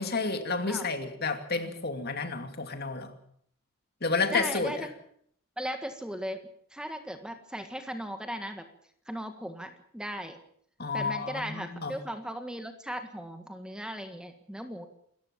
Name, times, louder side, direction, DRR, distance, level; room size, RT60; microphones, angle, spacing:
voice 1, 0.0-3.1 4.0-4.9 10.8-11.9, left 4 dB, 50° left, 7 dB, 2.6 m, -30 dB
voice 2, 4.3-4.9 5.6-8.6 9.1-10.4 10.9-14.9, equal, 5° right, 7 dB, 1.7 m, -37 dB
27.0 x 14.5 x 7.4 m, 0.65 s
head